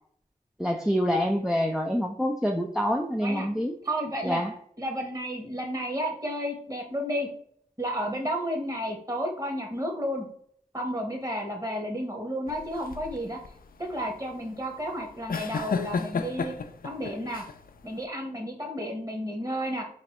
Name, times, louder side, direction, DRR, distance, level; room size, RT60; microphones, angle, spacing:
voice 1, 0.6-3.8 4.2-4.5, equal, 5° right, 2 dB, 0.5 m, -26 dB
voice 2, 3.8-4.4 4.8-7.3 7.8-10.3 10.7-13.4 13.8-16.5 16.8-17.5 17.8-19.8, equal, 20° right, 1 dB, 1.2 m, -32 dB
sound 1, 12.5-18.0, left 5 dB, 65° left, 0.4 m, -34 dB
4.3 x 2.9 x 3.0 m, 0.62 s
cardioid pair, 40°, 16 cm